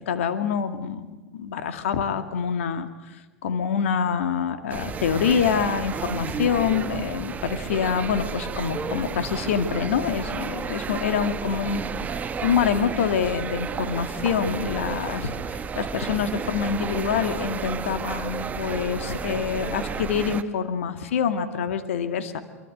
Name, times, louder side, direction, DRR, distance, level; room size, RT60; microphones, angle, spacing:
voice 1, 0.0-2.9 3.4-15.3 15.8-22.4, left 7 dB, 60° left, 9 dB, 2.2 m, -26 dB
sound 1, 4.7-20.4, right 6 dB, 20° right, 1.2 m, -32 dB
27.0 x 23.5 x 8.1 m, 1.2 s
figure-of-eight pair, 95°, 8 cm